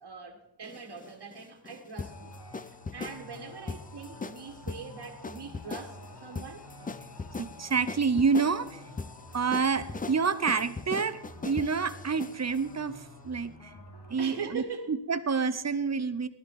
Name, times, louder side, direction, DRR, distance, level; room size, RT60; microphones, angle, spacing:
voice 1, 0.0-2.3 2.6-6.6 14.2-14.9, right 5 dB, 55° right, 1.7 m, -42 dB
sound 1, 0.6-12.6, left 4 dB, 20° left, 0.4 m, -40 dB
sound 2, 2.0-14.4, left 1 dB, 55° left, 2.5 m, -49 dB
voice 2, 7.4-8.8 9.3-11.2 11.4-13.7 14.1-16.3, right 5 dB, 35° right, 0.9 m, -28 dB
18.5 x 12.0 x 4.3 m
wide cardioid pair, 90°, 48 cm